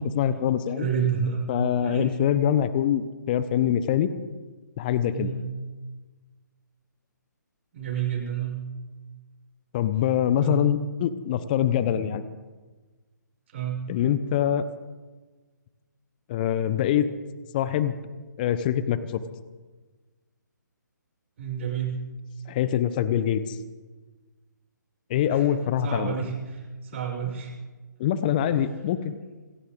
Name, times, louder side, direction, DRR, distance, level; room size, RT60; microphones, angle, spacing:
voice 1, 0.0-0.9 1.5-4.1 4.8-5.3 9.7-12.2 13.9-14.7 16.3-17.1 17.5-17.9 18.4-19.2 22.5-23.6 25.1-26.2 28.0-29.1, left 10 dB, 25° left, 14 dB, 0.8 m, -24 dB
voice 2, 0.8-1.5 1.8-2.2 5.1-5.4 7.7-8.6 10.4-10.6 13.5-13.8 21.4-22.0 25.3-25.5 25.8-27.5, right 7 dB, 40° right, -2 dB, 6.4 m, -30 dB
26.5 x 14.0 x 3.8 m, 1.3 s
figure-of-eight pair, 140°, 10 cm